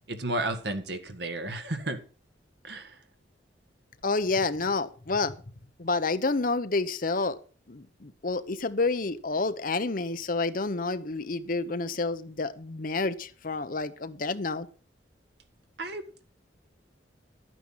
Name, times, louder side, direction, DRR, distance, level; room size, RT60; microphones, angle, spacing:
voice 1, 0.1-2.0 2.6-3.0 15.8-16.2, right 2 dB, 65° right, 7 dB, 1.8 m, -33 dB
voice 2, 4.0-5.3 5.8-7.4 7.7-14.7, left 3 dB, 50° left, 12 dB, 0.9 m, -29 dB
12.5 x 9.2 x 5.7 m, 0.39 s
head